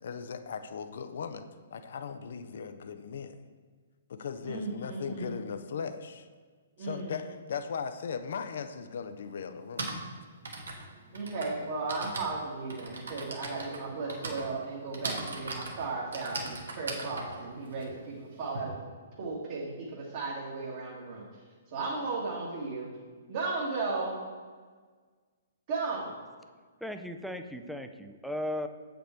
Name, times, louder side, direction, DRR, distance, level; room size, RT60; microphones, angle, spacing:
voice 1, 0.0-3.4 4.1-6.3 6.8-9.9, left 6 dB, 60° left, 9 dB, 0.5 m, -38 dB
voice 2, 4.4-5.3 6.8-7.2 11.1-18.7 19.2-21.2 21.7-22.9 23.3-24.2 25.7-26.1, right 3 dB, 45° right, -5 dB, 1.7 m, -35 dB
Typing, 8.4-8.5 9.5-18.6, right 2 dB, 70° right, 1.3 m, -39 dB
voice 3, 26.8-28.7, left 1 dB, ahead, 7 dB, 0.4 m, -36 dB
7.7 x 5.2 x 4.4 m, 1.5 s
figure-of-eight pair, 120°, 0 cm